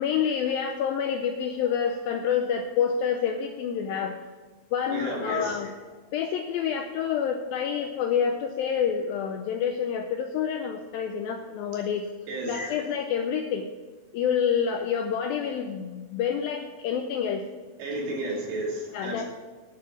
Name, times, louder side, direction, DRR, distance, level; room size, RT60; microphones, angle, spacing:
voice 1, 0.0-4.2 4.7-5.7 6.1-12.1 12.5-13.7 14.1-17.5 18.9-19.2, left 7 dB, 85° left, 4 dB, 2.1 m, -28 dB
voice 2, 4.9-5.6 12.3-12.6 17.8-19.2, right 1 dB, 85° right, -3 dB, 4.9 m, -32 dB
9.8 x 7.5 x 7.1 m, 1.3 s
omnidirectional pair, 4.9 m